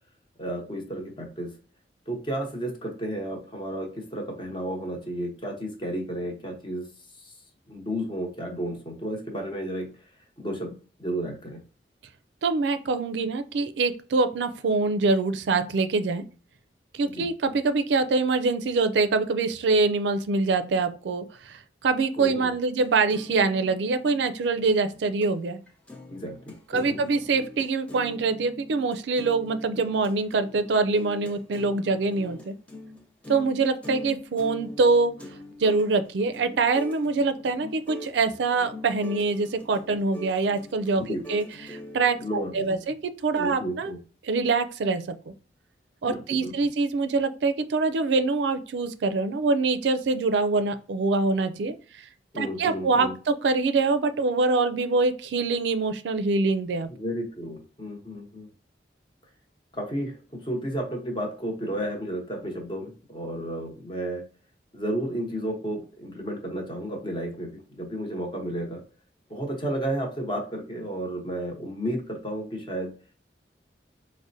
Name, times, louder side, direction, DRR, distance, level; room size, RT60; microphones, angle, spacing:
voice 1, 0.4-1.5 2.1-6.9 7.2-7.3 7.7-9.9 10.4-11.6 17.0-17.3 22.2-22.5 26.1-26.4 26.7-27.0 41.0-41.2 42.2-42.8 43.3-44.0 46.0-46.5 52.3-53.1 56.9-58.5 59.7-64.2 64.7-68.8 69.3-72.9, right 1 dB, 30° left, 1 dB, 0.9 m, -32 dB
voice 2, 12.4-16.2 16.9-25.6 26.7-32.5 33.3-35.1 35.6-43.0 43.2-43.9 44.2-45.3 46.0-52.0 52.4-56.9, right 3 dB, 85° right, 10 dB, 0.4 m, -24 dB
sound 1, 22.8-25.3 25.7-42.5, left 2 dB, 5° left, 0.5 m, -43 dB
4.8 x 2.1 x 2.6 m, 0.39 s
head